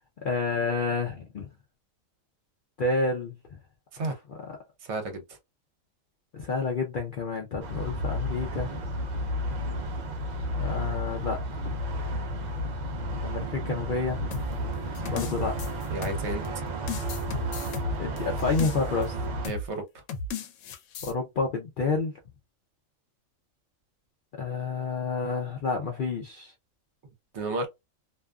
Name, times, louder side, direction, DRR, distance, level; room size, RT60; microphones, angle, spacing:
voice 1, 0.2-1.5 2.8-3.4 4.0-4.4 6.3-8.8 10.6-11.7 13.2-14.3 15.1-15.5 18.0-19.1 21.0-22.1 24.3-26.5, left 4 dB, 65° left, 0.5 m, -29 dB
voice 2, 4.8-5.2 15.9-16.4 19.4-19.8 27.3-27.7, right 2 dB, 60° right, 0.9 m, -32 dB
sound 1, 7.6-19.5, equal, 85° right, 0.3 m, -32 dB
sound 2, 14.3-16.5 16.9-19.1 19.4-19.7 20.1-21.1, left 4 dB, 90° left, 1.0 m, -35 dB
2.5 x 2.4 x 2.2 m
omnidirectional pair, 1.4 m